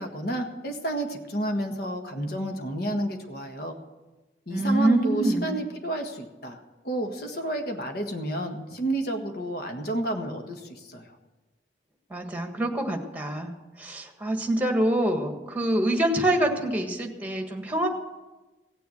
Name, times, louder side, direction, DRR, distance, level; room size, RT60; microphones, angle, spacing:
voice 1, 0.0-3.8 4.5-11.1, right 1 dB, 55° left, 4 dB, 1.6 m, -31 dB
voice 2, 4.5-5.6 12.1-13.5 13.8-17.9, right 1 dB, 10° right, 3 dB, 1.6 m, -25 dB
17.0 x 6.9 x 8.0 m, 1.2 s
head